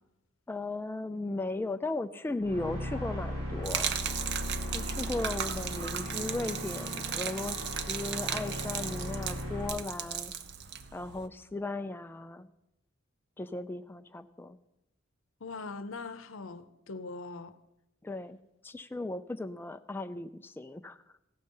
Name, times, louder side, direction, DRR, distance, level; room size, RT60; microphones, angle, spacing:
voice 1, 0.5-4.0 4.7-7.6 7.9-10.3 10.9-12.5 13.4-14.6 18.0-18.4 18.6-21.0, left 2 dB, 10° left, 0.3 m, -36 dB
sound 1, 2.4-9.7, equal, 90° right, 4.4 m, -37 dB
Gurgling / Liquid, 3.6-11.3, right 8 dB, 55° right, 0.6 m, -36 dB
voice 2, 15.4-17.5, left 3 dB, 80° left, 0.7 m, -41 dB
15.5 x 6.6 x 5.4 m
head